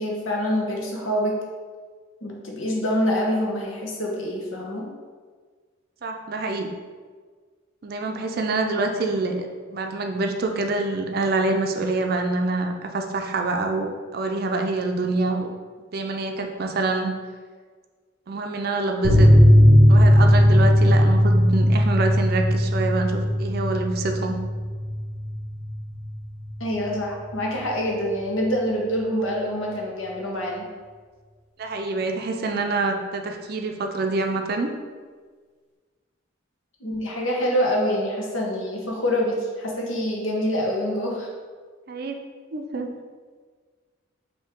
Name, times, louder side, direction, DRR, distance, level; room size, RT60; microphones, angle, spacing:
voice 1, 0.0-1.3 2.2-4.9 26.6-30.7 36.8-41.3, equal, 80° left, -1 dB, 1.0 m, -26 dB
voice 2, 6.0-6.7 7.8-15.5 15.9-17.1 18.3-19.3 19.9-24.4 31.6-34.7 41.9-42.2 42.5-42.9, right 3 dB, 50° right, 4 dB, 0.4 m, -26 dB
sound 1, 19.0-26.2 26.4-26.5 26.8-26.9, equal, 55° left, 0.8 m, -17 dB
5.5 x 2.7 x 3.6 m, 1.5 s
head